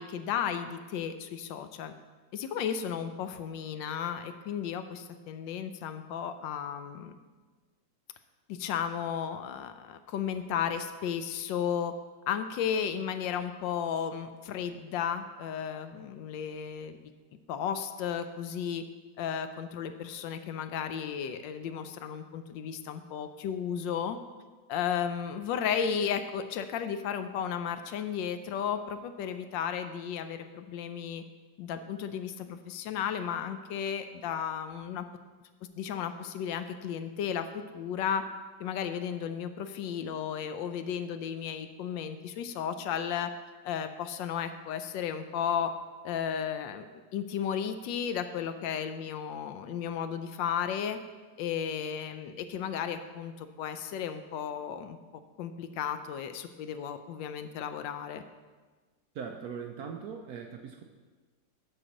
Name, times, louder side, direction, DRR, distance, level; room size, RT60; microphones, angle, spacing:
voice 1, 0.0-1.9 2.3-7.1 8.5-11.9 12.3-17.0 17.5-18.8 19.2-24.2 24.7-31.2 31.6-35.0 35.8-38.2 38.6-43.3 43.6-45.7 46.0-46.9 47.1-51.0 51.4-55.0 55.4-58.2, left 8 dB, 75° left, 9 dB, 1.2 m, -34 dB
voice 2, 59.1-60.8, right 6 dB, 70° right, 4 dB, 0.9 m, -40 dB
6.9 x 5.8 x 6.2 m, 1.3 s
omnidirectional pair, 2.1 m